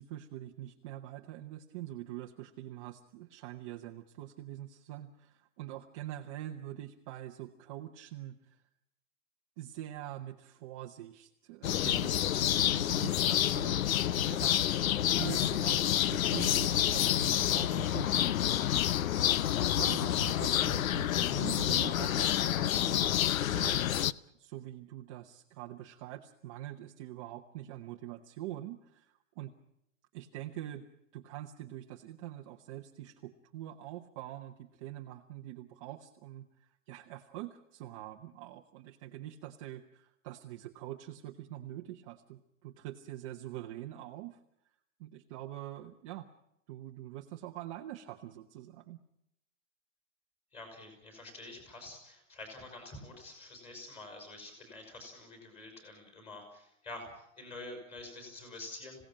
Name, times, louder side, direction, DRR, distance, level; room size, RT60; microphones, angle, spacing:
voice 1, 0.0-8.6 9.6-13.8 14.2-14.6 15.0-24.0 24.4-29.5 30.1-30.9 31.1-44.4 45.0-46.3 46.7-49.0, right 13 dB, 25° right, 3 dB, 0.8 m, -44 dB
sound 1, 11.6-24.1, left 11 dB, 85° left, 0.8 m, -28 dB
voice 2, 50.5-59.0, left 2 dB, 15° left, 6 dB, 5.7 m, -47 dB
26.5 x 17.0 x 8.8 m, 0.79 s
supercardioid pair, 170°, 40 cm